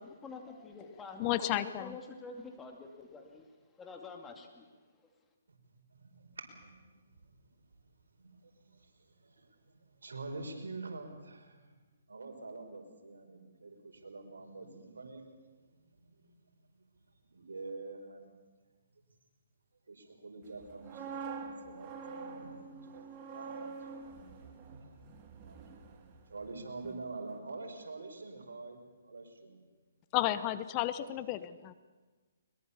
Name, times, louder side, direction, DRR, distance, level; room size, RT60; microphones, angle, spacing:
voice 1, 0.0-3.5 3.8-4.6, left 3 dB, 10° left, 3 dB, 2.4 m, -47 dB
voice 2, 1.2-2.0 30.1-31.7, left 14 dB, 30° left, 14 dB, 0.8 m, -32 dB
voice 3, 5.5-7.6 8.2-11.8 12.1-15.3 15.6-16.2 17.3-18.3 19.9-29.6 30.9-31.2, right 3 dB, 85° right, 4 dB, 4.7 m, -47 dB
sound 1, 20.6-26.5 26.8-27.1, right 5 dB, 30° right, 2.8 m, -46 dB
22.0 x 21.5 x 7.1 m, 1.3 s
hypercardioid pair, 145°, 0 cm